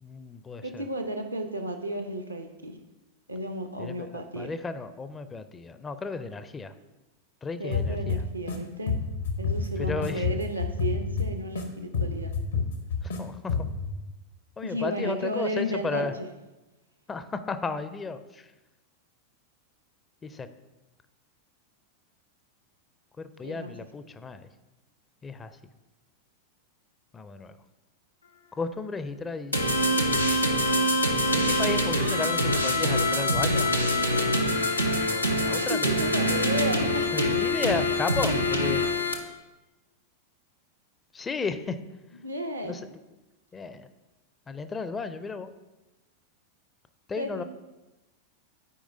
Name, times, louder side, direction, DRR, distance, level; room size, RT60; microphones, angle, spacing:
voice 1, 0.0-0.8 3.8-6.7 7.4-8.2 9.8-10.2 13.0-13.7 14.6-16.1 17.1-18.5 20.2-20.5 23.2-24.5 25.2-25.6 27.1-27.6 28.5-29.7 31.3-33.7 34.7-36.1 37.1-39.1 41.1-41.8 42.6-42.8 43.5-43.9 44.5-45.5 47.1-47.4, left 4 dB, 15° left, 11 dB, 0.4 m, -34 dB
voice 2, 0.6-2.8 3.3-4.5 7.6-9.0 9.4-12.3 14.6-16.3 23.4-23.7 35.6-37.3 42.2-42.7 47.2-47.4, equal, 85° right, 6 dB, 0.7 m, -33 dB
sound 1, 7.7-8.6 8.9-11.6 11.9-13.2 13.5-13.9, left 5 dB, 70° left, 1.0 m, -29 dB
sound 2, 29.5-39.1, left 1 dB, 90° left, 0.7 m, -24 dB
12.0 x 4.8 x 2.6 m, 1.1 s
figure-of-eight pair, 90°, 0 cm